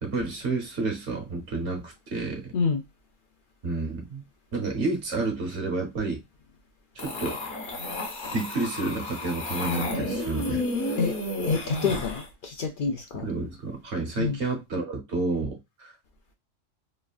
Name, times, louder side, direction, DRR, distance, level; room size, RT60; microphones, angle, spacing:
voice 1, 0.0-2.4 3.6-4.2 4.5-6.2 6.9-7.4 8.3-10.6 13.1-15.9, right 3 dB, 65° right, 1.2 m, -30 dB
sound 1, 7.0-12.3, left 2 dB, 45° left, 0.9 m, -31 dB
voice 2, 11.5-13.3 14.2-14.4, left 5 dB, 60° left, 0.5 m, -27 dB
3.1 x 2.4 x 2.3 m
omnidirectional pair, 1.3 m